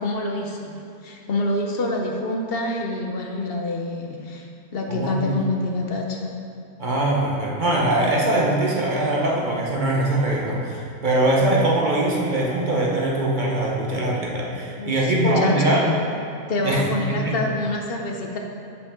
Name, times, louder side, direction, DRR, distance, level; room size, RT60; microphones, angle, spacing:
voice 1, 0.0-4.5 4.7-6.3 14.8-16.0 16.5-18.4, left 2 dB, 55° left, 1 dB, 0.7 m, -26 dB
voice 2, 4.9-5.4 6.8-15.9 16.6-16.8 17.1-17.4, right 1 dB, 35° right, -3 dB, 1.0 m, -22 dB
11.0 x 5.2 x 3.7 m, 2.6 s
omnidirectional pair, 1.6 m